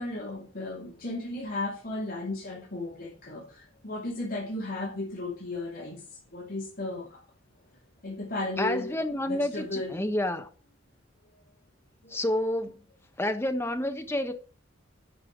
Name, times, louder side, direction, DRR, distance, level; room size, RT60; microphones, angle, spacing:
voice 1, 0.0-7.2 8.0-10.0 12.0-12.2, left 2 dB, 45° left, 3.0 m, -35 dB
voice 2, 8.6-10.5 12.1-12.7 13.2-14.3, left 1 dB, 10° left, 1.1 m, -29 dB
11.0 x 5.6 x 6.5 m
head